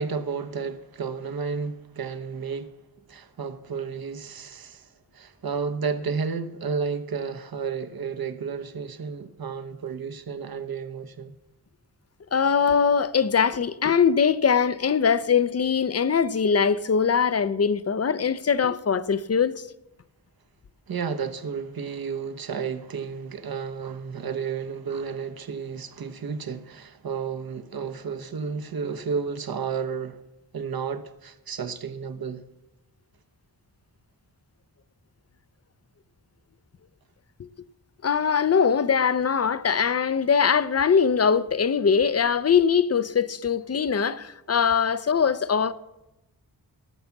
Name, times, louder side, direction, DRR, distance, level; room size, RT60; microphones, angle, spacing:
voice 1, 0.0-2.8 3.1-11.3 20.9-30.2 30.5-32.4, right 6 dB, 65° right, 1.1 m, -32 dB
voice 2, 12.3-19.6 38.0-45.7, left 6 dB, 40° left, 0.6 m, -22 dB
16.5 x 7.0 x 7.1 m
wide cardioid pair, 130°, 39 cm